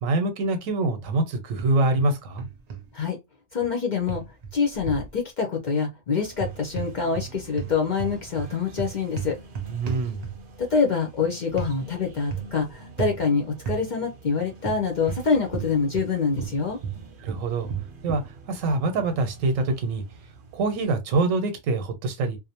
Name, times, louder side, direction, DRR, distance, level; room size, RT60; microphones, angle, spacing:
voice 1, 0.0-2.5 9.7-10.2 17.2-17.7 18.0-20.0 20.5-22.4, right 2 dB, 90° right, 1.0 m, -25 dB
sound 1, 1.6-2.1 2.4-2.8 4.1-5.1 6.3-7.3 7.6-10.6 11.6-11.7 12.3-12.6 13.0-13.2 13.7-13.8 14.6-16.1 16.4-18.3, right 7 dB, 70° right, 0.3 m, -33 dB
voice 2, 3.5-4.2 4.5-9.4 10.6-16.8, left 5 dB, 60° left, 0.5 m, -25 dB
sound 2, 6.2-20.9, right 2 dB, 55° right, 0.7 m, -46 dB
2.5 x 2.0 x 2.7 m
omnidirectional pair, 1.3 m